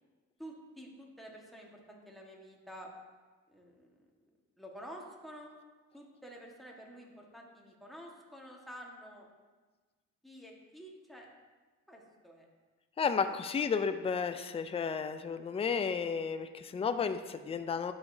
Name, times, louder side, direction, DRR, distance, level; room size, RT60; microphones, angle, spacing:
voice 1, 0.4-2.9 3.5-3.9 4.6-5.5 5.9-9.3 10.2-11.3 11.9-12.5, equal, ahead, -1 dB, 1.5 m, -50 dB
voice 2, 13.0-17.9, left 6 dB, 20° left, 9 dB, 0.4 m, -32 dB
12.0 x 5.0 x 2.7 m, 1.3 s
cardioid pair, 90°, 30 cm